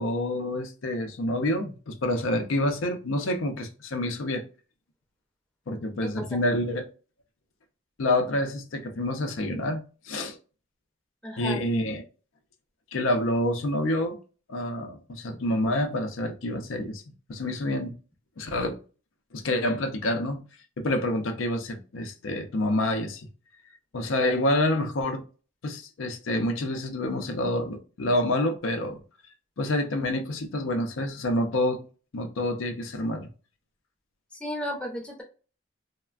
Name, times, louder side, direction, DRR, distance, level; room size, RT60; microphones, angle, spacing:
voice 1, 0.0-4.4 5.7-6.9 8.0-9.8 10.1-10.4 11.4-12.0 12.9-14.2 14.5-17.0 17.3-17.9 18.4-18.8 19.3-20.4 20.8-23.3 23.9-25.2 25.6-29.0 29.6-31.8 32.1-33.3, left 1 dB, 85° left, 0.5 m, -27 dB
voice 2, 6.0-6.4 11.2-11.6 34.3-35.2, equal, 5° left, 0.5 m, -34 dB
3.2 x 2.1 x 2.3 m
head